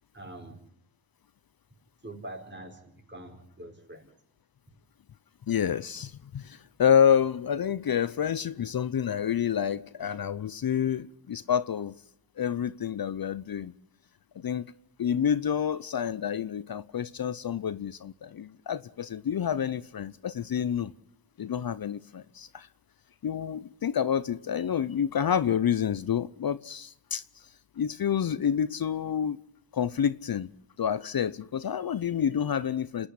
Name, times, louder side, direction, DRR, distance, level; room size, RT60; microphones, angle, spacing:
voice 1, 0.1-0.6 2.0-4.1, right 1 dB, 25° right, 5.0 m, -44 dB
voice 2, 5.5-11.9 12.4-13.7 14.4-14.7 15.0-20.9 21.4-22.7 23.2-27.2 27.8-29.4 29.7-30.5 30.8-33.1, left 8 dB, 55° left, 0.7 m, -28 dB
27.5 x 10.0 x 9.9 m
cardioid pair, 70°, 43 cm